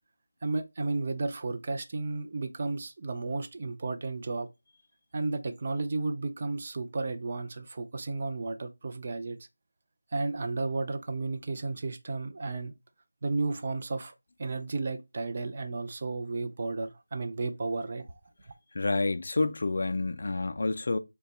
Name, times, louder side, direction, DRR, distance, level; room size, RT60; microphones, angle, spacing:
voice 1, 0.4-4.5 5.1-9.4 10.1-12.7 13.2-14.1 14.4-18.1, right 3 dB, 35° right, 0.4 m, -33 dB
voice 2, 18.7-21.0, left 3 dB, 50° left, 0.3 m, -28 dB
2.8 x 2.2 x 4.1 m
figure-of-eight pair, 170°, 0 cm